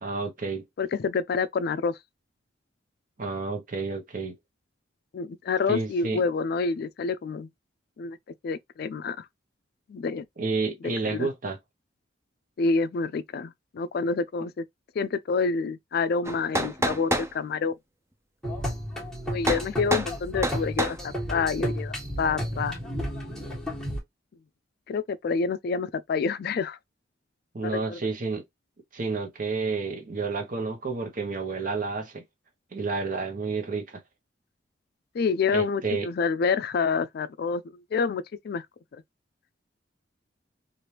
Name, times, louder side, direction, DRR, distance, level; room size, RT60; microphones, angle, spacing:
voice 1, 0.0-0.6 3.2-4.3 5.7-6.2 10.4-11.6 27.5-28.4 28.9-32.2 32.7-34.0 35.5-36.1, right 4 dB, 45° right, 0.9 m, -30 dB
voice 2, 0.8-2.0 5.1-7.5 8.0-8.2 8.4-9.3 9.9-10.2 11.0-11.3 12.6-14.6 15.0-17.7 19.3-22.8 24.9-26.8 27.9-28.0 35.1-37.6 37.9-38.7, left 5 dB, 55° left, 0.3 m, -27 dB
sound 1, 16.3-17.3 19.5-19.7 19.9-20.1 20.4-21.0, right 1 dB, 15° right, 0.5 m, -27 dB
sound 2, 18.4-24.0, equal, 5° left, 1.4 m, -32 dB
3.3 x 2.5 x 2.8 m
head